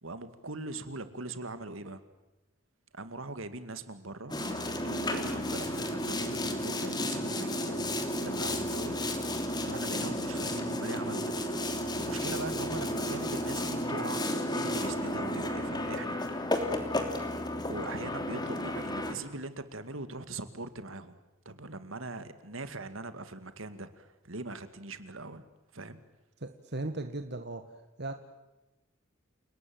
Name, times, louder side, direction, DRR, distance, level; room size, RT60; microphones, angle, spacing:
voice 1, 0.0-2.0 2.9-7.9 8.2-9.0 9.6-16.2 17.7-21.2 21.5-25.4 25.7-26.0, right 2 dB, 75° right, 11 dB, 2.2 m, -41 dB
Boat Water vehicle, 4.3-19.1, left 1 dB, 20° left, 3.1 m, -32 dB
voice 2, 26.4-27.7 28.0-28.1, right 2 dB, 55° right, 7 dB, 1.7 m, -37 dB
30.0 x 19.0 x 7.8 m, 1.0 s
head